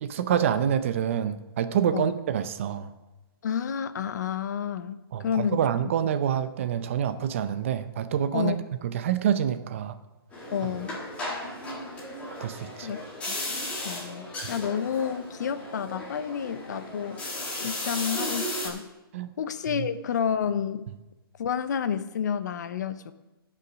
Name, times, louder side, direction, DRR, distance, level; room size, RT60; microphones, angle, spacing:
voice 1, 0.0-2.9 5.1-10.0 12.4-12.9 14.4-14.5 19.1-19.3 19.7-19.9, right 9 dB, 35° right, 12 dB, 0.6 m, -27 dB
voice 2, 3.4-5.6 8.3-8.6 10.5-11.0 12.8-13.0 13.3-13.4 13.8-17.2 17.6-18.9 19.4-20.9 21.4-23.1, left 8 dB, 45° left, 13 dB, 0.6 m, -30 dB
sound 1, 10.3-18.7, left 1 dB, 10° left, 1.6 m, -35 dB
17.0 x 5.7 x 5.1 m, 1.0 s
hypercardioid pair, 165°, 13 cm